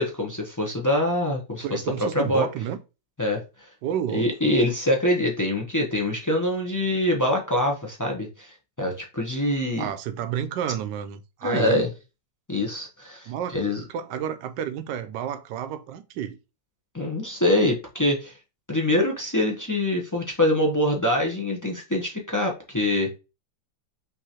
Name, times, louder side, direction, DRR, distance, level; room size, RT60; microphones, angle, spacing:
voice 1, 0.0-2.5 3.2-3.4 4.1-9.9 11.4-11.9 12.5-13.8 16.9-18.3 18.7-23.2, left 1 dB, 20° left, 0.5 m, -24 dB
voice 2, 1.6-2.8 3.8-4.5 9.8-11.9 13.3-13.5 13.9-16.4, right 9 dB, 90° right, 1.3 m, -30 dB
5.7 x 3.1 x 2.8 m
omnidirectional pair, 1.9 m